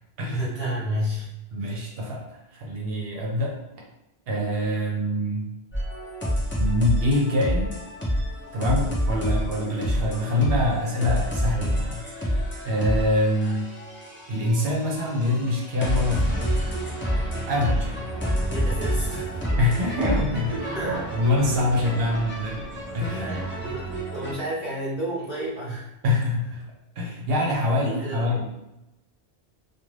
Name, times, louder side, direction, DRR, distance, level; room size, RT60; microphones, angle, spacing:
voice 1, 0.3-1.3 1.6-1.8 13.4-13.6 18.5-19.4 20.5-21.1 21.4-21.7 23.1-25.9 27.0-27.1 27.7-28.3, right 1 dB, 40° left, -8 dB, 1.0 m, -32 dB
voice 2, 1.5-3.5 4.3-5.5 6.6-7.7 8.5-13.7 14.3-16.5 17.3-18.1 19.6-20.5 21.1-22.6 22.9-23.4 26.0-26.7 27.0-28.4, left 1 dB, 65° right, -1 dB, 0.8 m, -25 dB
sound 1, 5.7-24.3, equal, 15° left, 0.4 m, -28 dB
Bark, 18.1-24.0, right 2 dB, 20° right, 0.7 m, -38 dB
2.4 x 2.3 x 3.1 m, 0.92 s
omnidirectional pair, 1.1 m